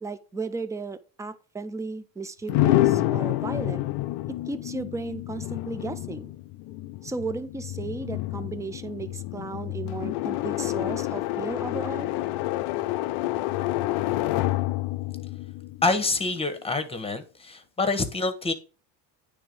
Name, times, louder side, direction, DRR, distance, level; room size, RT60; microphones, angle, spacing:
voice 1, 0.0-3.8 4.5-6.3 7.0-12.1, right 3 dB, 10° right, 0.3 m, -35 dB
sound 1, 2.5-16.3, left 16 dB, 60° left, 0.5 m, -28 dB
voice 2, 15.8-18.5, left 3 dB, 10° left, 1.1 m, -26 dB
9.2 x 3.5 x 5.2 m
supercardioid pair, 110°, 47 cm